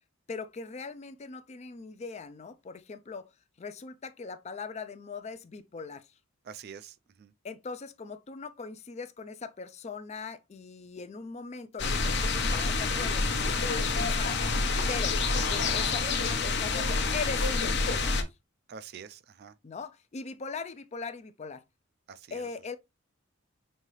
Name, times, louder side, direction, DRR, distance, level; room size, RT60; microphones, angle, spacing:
voice 1, 0.3-3.3 3.6-6.1 7.4-14.4 14.9-15.2 15.5-18.2 19.6-21.6 22.3-22.8, left 4 dB, 30° left, 0.4 m, -40 dB
voice 2, 6.5-7.3 18.7-19.5 22.1-22.5, right 7 dB, 45° right, 0.3 m, -46 dB
sound 1, 11.8-18.2, left 3 dB, 50° left, 0.7 m, -27 dB
5.4 x 2.7 x 3.1 m
head